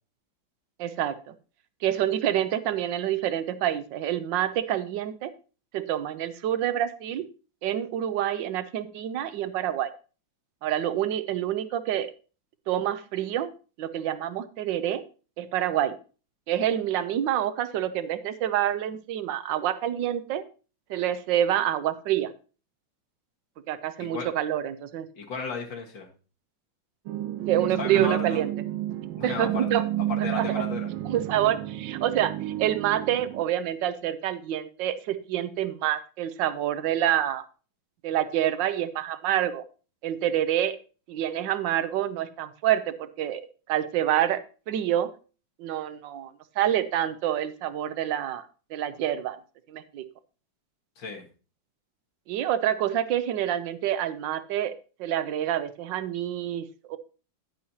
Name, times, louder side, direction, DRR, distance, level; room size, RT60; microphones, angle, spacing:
voice 1, 0.8-1.3 1.8-5.3 5.7-7.2 7.6-9.9 10.6-12.1 12.7-13.5 13.8-15.0 15.4-15.9 16.5-20.4 20.9-22.3 23.7-25.1 27.5-28.5 29.2-29.8 30.3-30.6 31.1-37.4 38.0-39.6 40.0-40.8 41.1-43.4 43.7-44.4 44.7-45.1 45.6-46.3 46.6-48.4 48.7-49.4 49.7-50.1 52.3-54.7 55.0-57.0, right 11 dB, 75° right, 13 dB, 1.3 m, -27 dB
voice 2, 24.0-24.3 25.2-26.1 27.8-28.4 29.2-29.8 30.1-30.9 51.0-51.3, left 4 dB, 70° left, 1 dB, 2.3 m, -34 dB
sound 1, 27.1-33.4, right 13 dB, 90° right, 1.4 m, -31 dB
10.0 x 8.6 x 2.8 m, 0.36 s
omnidirectional pair, 2.2 m